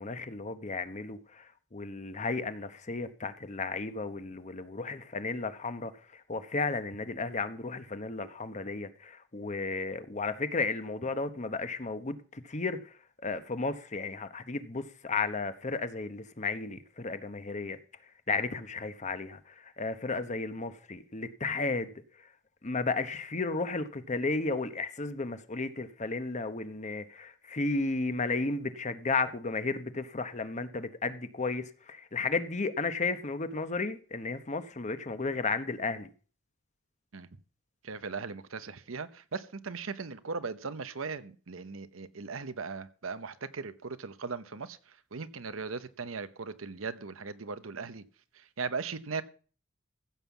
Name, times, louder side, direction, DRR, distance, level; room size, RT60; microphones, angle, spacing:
voice 1, 0.0-1.4 1.7-5.9 6.3-12.8 13.2-17.8 18.3-19.4 19.8-21.9 22.6-36.1, left 3 dB, 35° left, 1.0 m, -33 dB
voice 2, 37.8-48.0 48.3-49.2, right 4 dB, 90° right, 0.9 m, -38 dB
15.0 x 5.6 x 7.2 m
head